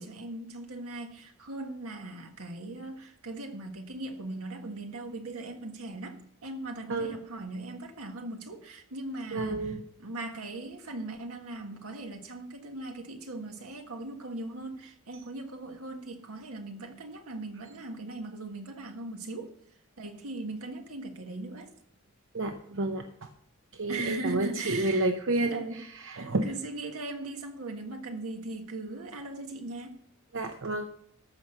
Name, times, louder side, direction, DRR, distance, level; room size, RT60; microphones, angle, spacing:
voice 1, 0.0-19.5 20.0-21.7 23.9-25.8 26.1-30.0, right 2 dB, 80° right, 5 dB, 1.6 m, -39 dB
voice 2, 9.3-9.8 22.3-23.3 23.7-26.5 30.3-30.9, right 2 dB, 60° right, 6 dB, 0.8 m, -30 dB
14.0 x 6.0 x 6.5 m, 0.70 s
head